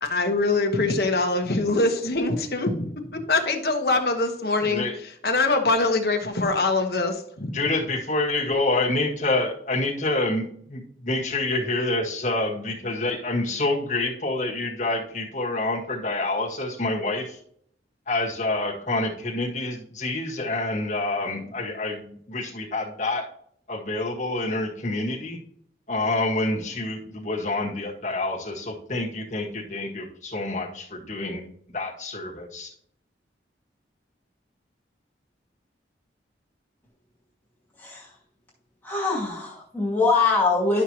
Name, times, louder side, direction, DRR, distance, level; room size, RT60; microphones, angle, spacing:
voice 1, 0.0-4.8 5.2-7.5, left 3 dB, 60° left, 4 dB, 1.2 m, -23 dB
voice 2, 4.6-4.9 7.5-17.4 18.1-23.2 23.7-25.4 25.9-31.4 31.7-32.7, left 2 dB, 45° left, -3 dB, 1.8 m, -27 dB
voice 3, 37.8-38.1 38.8-40.8, left 3 dB, 10° left, -6 dB, 2.4 m, -23 dB
12.0 x 6.2 x 2.9 m, 0.65 s
head